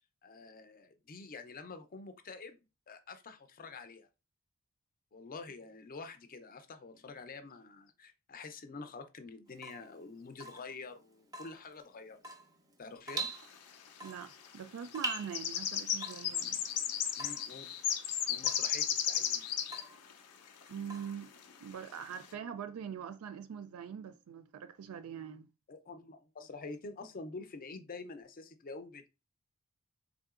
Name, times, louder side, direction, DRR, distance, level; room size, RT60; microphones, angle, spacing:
voice 1, 0.2-4.1 5.1-12.3 12.8-13.3 17.2-17.7 18.3-19.4 25.7-29.1, left 3 dB, 40° left, 0.5 m, -47 dB
Water tap faucet / Drip, 9.5-21.7, right 2 dB, 15° right, 0.5 m, -46 dB
sound 1, 13.4-13.5 14.3-14.6 14.8-19.8 20.1-20.2 20.6-20.7 21.5-21.6 22.1-22.3, left 9 dB, 90° left, 0.6 m, -34 dB
voice 2, 14.0-16.7 20.7-21.3 21.6-25.5, right 8 dB, 70° right, 0.3 m, -43 dB
3.7 x 3.6 x 2.4 m
head